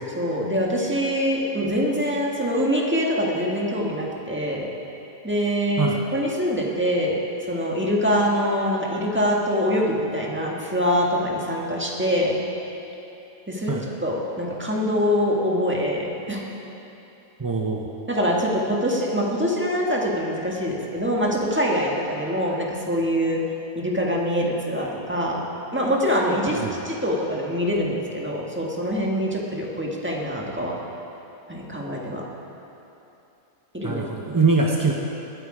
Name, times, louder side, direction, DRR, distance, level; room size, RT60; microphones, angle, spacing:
voice 1, 0.2-4.7 5.2-7.2 7.5-12.3 13.5-16.4 18.1-23.4 23.7-25.4 25.7-30.8 31.5-32.2 33.7-34.0, equal, 10° right, -3 dB, 1.5 m, -24 dB
voice 2, 17.4-17.9 26.5-26.7 33.8-34.9, right 3 dB, 25° right, -1 dB, 0.4 m, -22 dB
20.5 x 8.3 x 4.9 m, 2.9 s
omnidirectional pair, 1.6 m